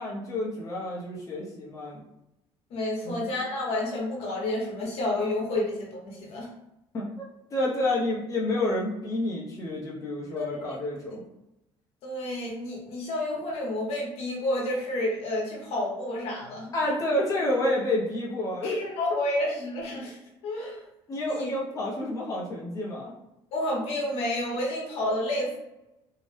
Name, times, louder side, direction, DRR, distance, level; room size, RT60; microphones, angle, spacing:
voice 1, 0.0-2.0 3.0-3.3 6.9-11.2 16.7-18.8 19.1-19.2 21.1-23.1, left 1 dB, 30° left, -4 dB, 0.7 m, -29 dB
voice 2, 2.7-6.5 10.3-10.8 12.0-16.7 18.6-20.2 20.4-20.8 21.3-21.5 23.5-25.6, left 1 dB, 70° left, -2 dB, 0.9 m, -30 dB
2.7 x 2.1 x 3.2 m, 0.90 s
cardioid pair, 125°, 11 cm